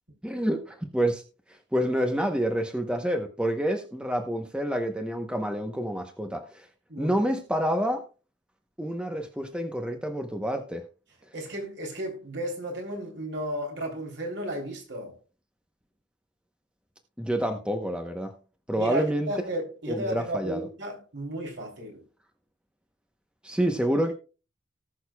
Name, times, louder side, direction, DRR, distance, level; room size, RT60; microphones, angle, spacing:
voice 1, 0.2-1.2 1.7-6.7 7.0-8.0 8.8-10.8 17.2-18.3 18.7-19.3 19.9-20.7 23.4-24.1, equal, 5° right, 0.8 m, -28 dB
voice 2, 6.9-7.2 11.3-15.2 18.8-22.0, right 1 dB, 60° right, 3.2 m, -34 dB
19.0 x 6.5 x 2.3 m
head